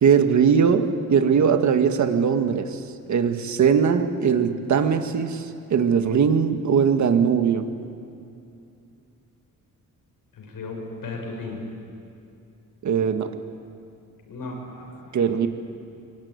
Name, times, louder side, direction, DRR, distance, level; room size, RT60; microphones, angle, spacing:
voice 1, 0.0-2.8 3.1-7.7 12.8-13.3 15.1-15.5, right 7 dB, 55° right, 7 dB, 1.6 m, -20 dB
voice 2, 10.3-11.6 14.3-15.2, left 3 dB, 85° left, 1 dB, 6.3 m, -35 dB
24.5 x 23.5 x 9.6 m, 2.6 s
wide cardioid pair, 175°, 34 cm